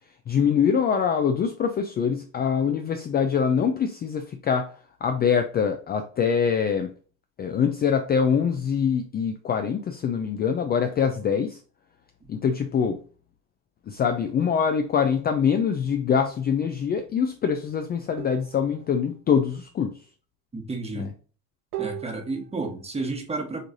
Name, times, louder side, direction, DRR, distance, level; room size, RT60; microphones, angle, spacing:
voice 1, 0.3-4.7 5.0-6.9 7.4-11.6 12.3-13.0 13.9-20.0 21.0-21.1, left 7 dB, 25° left, 0.4 m, -24 dB
sound 1, 18.2-18.7 21.7-22.6, right 15 dB, 80° right, 1.4 m, -36 dB
voice 2, 20.5-21.1 21.8-23.7, right 3 dB, 15° right, 1.1 m, -31 dB
6.5 x 3.1 x 2.6 m
supercardioid pair, 115°, 39 cm